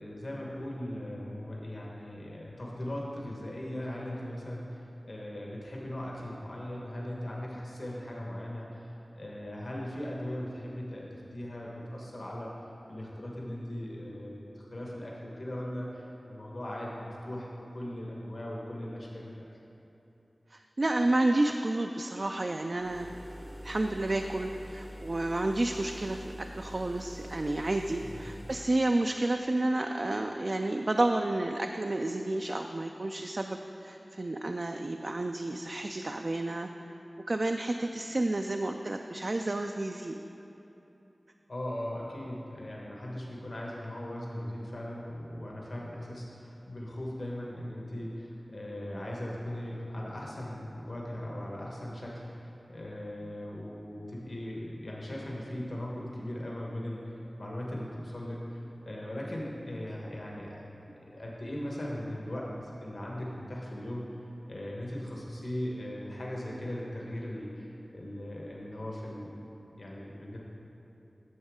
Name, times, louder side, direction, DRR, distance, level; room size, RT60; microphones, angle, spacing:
voice 1, 0.0-12.5 12.9-19.5 28.0-28.2 41.5-60.6 61.0-69.3 69.8-70.4, left 1 dB, 70° left, -3 dB, 1.3 m, -39 dB
voice 2, 20.5-23.1 23.6-36.7 37.3-40.1, right 2 dB, 55° right, 4 dB, 0.3 m, -30 dB
sound 1, 22.8-28.8, equal, 10° right, 0.6 m, -45 dB
9.5 x 6.9 x 3.6 m, 3.0 s
wide cardioid pair, 45°, 0 cm